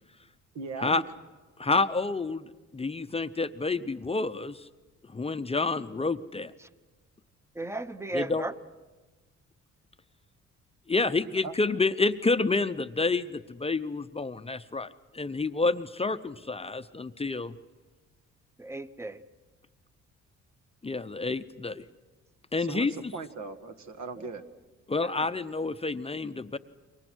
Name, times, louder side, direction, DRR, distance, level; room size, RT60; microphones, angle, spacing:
voice 1, 0.5-1.0 11.4-11.5 22.6-24.4, right 4 dB, 65° right, 8 dB, 1.8 m, -38 dB
voice 2, 1.6-2.4 2.7-4.6 5.1-6.5 8.1-8.5 10.9-14.9 15.1-17.5 20.8-21.8 22.5-22.9 24.9-26.6, left 3 dB, 20° left, 10 dB, 0.7 m, -28 dB
voice 3, 7.5-8.5 18.6-19.2 24.2-24.3 25.0-25.3, right 2 dB, 10° right, 12 dB, 1.0 m, -36 dB
30.0 x 23.5 x 6.3 m, 1.2 s
cardioid pair, 90°, 30 cm